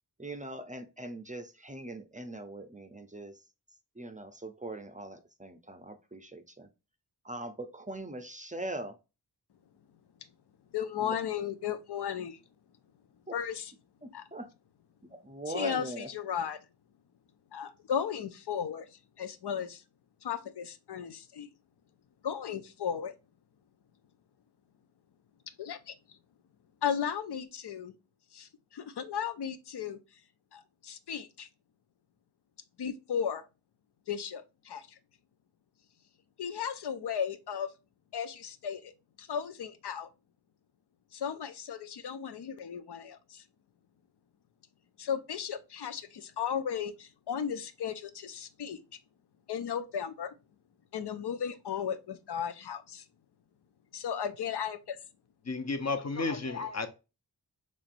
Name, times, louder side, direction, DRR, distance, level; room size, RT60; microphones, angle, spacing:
voice 1, 0.2-3.4 4.0-6.7 7.2-9.0 11.0-11.1 14.0-14.5 15.1-16.1, right 1 dB, 20° right, 0.5 m, -41 dB
voice 2, 10.7-12.4 13.3-13.7 14.1-14.2 15.5-16.6 17.5-19.8 20.2-21.5 22.2-23.1 25.6-26.2 26.8-28.0 28.3-30.0 30.5-31.5 32.8-33.4 34.1-35.0 36.4-37.7 38.1-38.9 39.2-40.1 41.1-43.4 45.0-48.8 49.5-50.3 50.9-53.0 53.9-55.0, left 8 dB, 80° left, 0.5 m, -35 dB
voice 3, 55.4-56.9, left 3 dB, 40° left, 0.7 m, -32 dB
4.4 x 3.1 x 2.5 m
wide cardioid pair, 65°, 40 cm